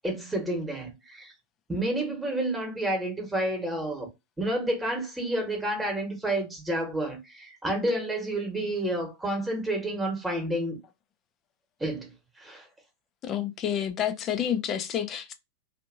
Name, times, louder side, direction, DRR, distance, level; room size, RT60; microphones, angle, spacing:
voice 1, 0.0-1.3 1.7-4.1 4.4-10.8 11.8-12.1 12.4-12.7, right 1 dB, 5° right, 1.1 m, -30 dB
voice 2, 13.2-15.3, left 9 dB, 30° left, 0.4 m, -29 dB
2.7 x 2.5 x 2.5 m
figure-of-eight pair, 90°, 0 cm